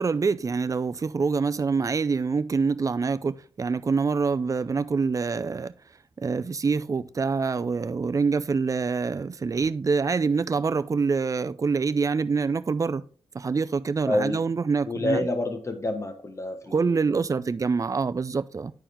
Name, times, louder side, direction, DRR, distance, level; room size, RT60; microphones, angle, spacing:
voice 1, 0.0-5.7 6.2-13.0 13.3-15.3 16.7-18.7, right 4 dB, 35° right, 0.4 m, -25 dB
voice 2, 14.1-14.4 14.9-17.3, left 1 dB, 30° left, 1.4 m, -28 dB
10.5 x 4.5 x 3.6 m
wide cardioid pair, 90°, 10 cm